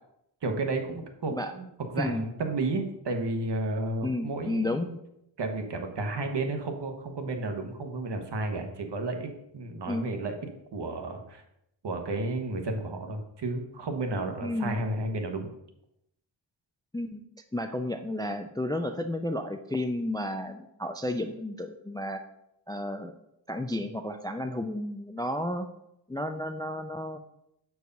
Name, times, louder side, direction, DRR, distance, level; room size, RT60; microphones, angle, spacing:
voice 1, 0.4-1.7 1.9-5.0 5.4-9.3 9.5-10.4 10.7-11.4 11.8-15.5, right 2 dB, 65° right, 5 dB, 1.2 m, -32 dB
voice 2, 4.0-4.9 9.9-10.1 14.4-14.8 16.9-17.2 17.5-22.2 22.7-23.1 23.5-25.7 26.1-27.2, left 1 dB, 10° left, 7 dB, 0.3 m, -32 dB
6.8 x 4.7 x 5.2 m, 0.80 s
wide cardioid pair, 150°, 45 cm